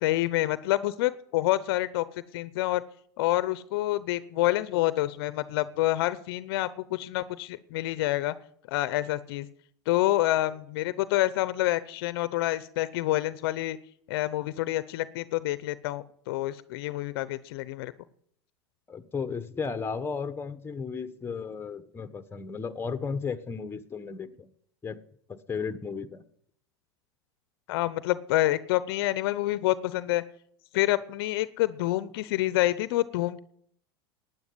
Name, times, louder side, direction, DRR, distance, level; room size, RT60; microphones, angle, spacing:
voice 1, 0.0-2.0 2.3-2.8 3.2-8.3 8.7-9.5 9.9-13.8 14.1-17.9 27.7-30.2 30.7-33.4, left 16 dB, 65° left, 16 dB, 0.8 m, -27 dB
voice 2, 18.9-24.5 24.8-25.0 25.3-26.2, left 5 dB, 15° left, 11 dB, 1.3 m, -34 dB
12.0 x 9.5 x 9.6 m, 0.66 s
hypercardioid pair, 95°, 13 cm